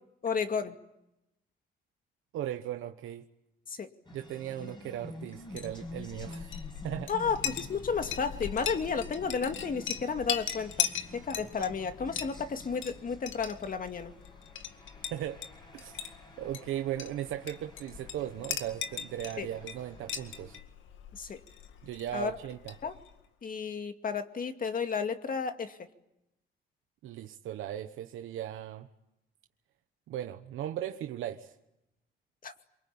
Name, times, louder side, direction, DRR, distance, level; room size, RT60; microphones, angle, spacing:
voice 1, 0.2-0.8 3.7-3.9 7.1-14.1 19.4-19.5 21.1-21.4 22.1-22.3 22.8-22.9 23.4-25.8 32.4-32.5, left 5 dB, 45° left, 7 dB, 2.4 m, -32 dB
voice 2, 2.3-3.3 4.1-6.5 6.8-7.1 10.8-10.9 15.1-15.4 15.7-16.1 16.4-20.6 21.8-22.8 27.0-28.9 30.1-31.5, right 12 dB, 85° right, 7 dB, 1.2 m, -37 dB
sound 1, 4.0-20.6, left 1 dB, 25° left, 5.7 m, -50 dB
Chink clink, 5.4-23.2, left 9 dB, 75° left, 2.1 m, -40 dB
27.0 x 24.0 x 8.7 m, 0.87 s
cardioid pair, 90°, 20 cm